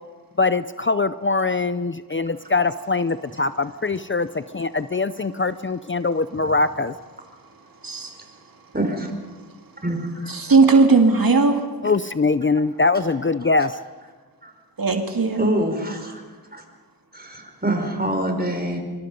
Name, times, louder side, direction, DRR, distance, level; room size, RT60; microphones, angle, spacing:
voice 1, 0.4-6.9 11.8-13.8, left 3 dB, 35° left, 13 dB, 0.6 m, -22 dB
voice 2, 7.8-8.2 10.3-11.6 14.8-15.5, right 4 dB, 70° right, 3 dB, 2.1 m, -17 dB
voice 3, 8.7-9.1 9.8-10.3 14.4-14.5 15.4-16.2 16.5-16.6 17.1-18.8, right 1 dB, 25° right, 4 dB, 4.9 m, -25 dB
25.5 x 24.5 x 5.4 m, 1.4 s
wide cardioid pair, 75°, 37 cm